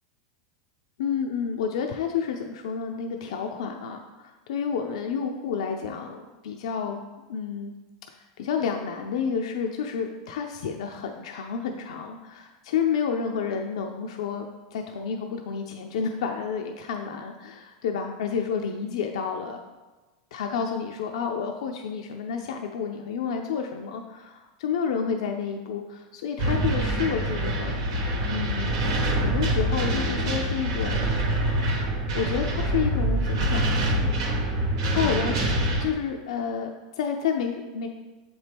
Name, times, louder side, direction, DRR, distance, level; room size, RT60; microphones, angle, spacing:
voice 1, 1.0-7.0 7.3-7.7 8.1-14.4 14.7-19.6 20.3-27.8 28.3-31.2 32.1-33.9 34.9-35.4 35.8-37.9, left 6 dB, 85° left, 3 dB, 0.5 m, -30 dB
sound 1, 26.4-35.9, right 1 dB, 70° right, 1.0 m, -25 dB
7.4 x 4.3 x 3.4 m, 1.2 s
supercardioid pair, 160°, 3 cm